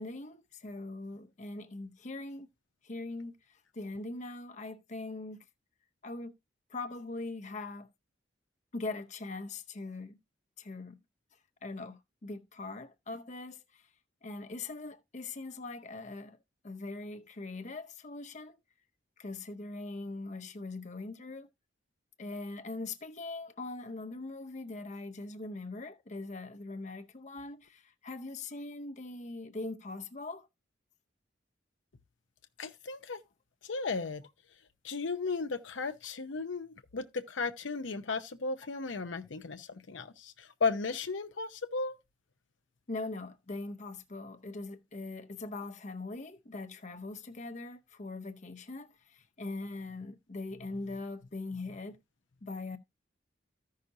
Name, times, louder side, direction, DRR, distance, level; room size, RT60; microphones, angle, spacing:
voice 1, 0.0-2.5 2.8-5.4 6.0-6.3 6.7-7.9 8.7-10.2 10.6-11.0 11.6-13.8 14.2-16.4 16.6-18.6 19.2-21.5 22.2-30.5 42.9-52.0 52.4-52.8, left 2 dB, 40° left, 0.8 m, -41 dB
voice 2, 32.6-33.2 33.6-34.2 34.8-42.0, left 4 dB, 75° left, 0.8 m, -35 dB
14.5 x 5.7 x 2.7 m
head